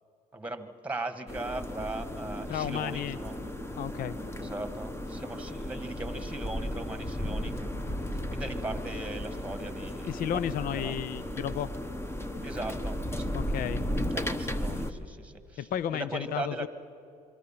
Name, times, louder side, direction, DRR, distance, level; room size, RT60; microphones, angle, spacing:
voice 1, 0.3-3.4 4.4-7.7 8.3-10.2 10.7-10.9 12.4-13.3 14.1-16.7, right 2 dB, 10° right, 9 dB, 1.6 m, -38 dB
sound 1, 1.3-14.9, equal, 15° left, 1.2 m, -35 dB
voice 2, 2.5-3.2 3.8-4.2 10.1-11.7 13.3-13.8 15.6-16.7, left 10 dB, 60° left, 16 dB, 0.6 m, -32 dB
27.5 x 22.5 x 5.8 m, 2.7 s
cardioid pair, 110°, 17 cm